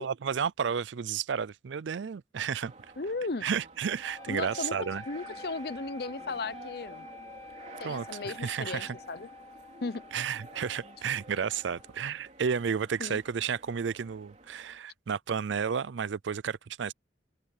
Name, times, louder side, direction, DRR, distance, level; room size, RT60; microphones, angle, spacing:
voice 1, 0.0-2.7 3.4-5.0 7.8-9.0 10.1-16.9, right 7 dB, 80° right, 0.4 m, -32 dB
sound 1, 2.6-14.8, right 2 dB, 40° right, 3.3 m, -51 dB
voice 2, 3.0-3.5 4.3-7.1 7.8-9.3 9.8-10.0 13.0-13.2, left 3 dB, 55° left, 0.8 m, -36 dB
sound 2, 4.0-12.1, left 3 dB, 15° left, 1.1 m, -48 dB
open air
head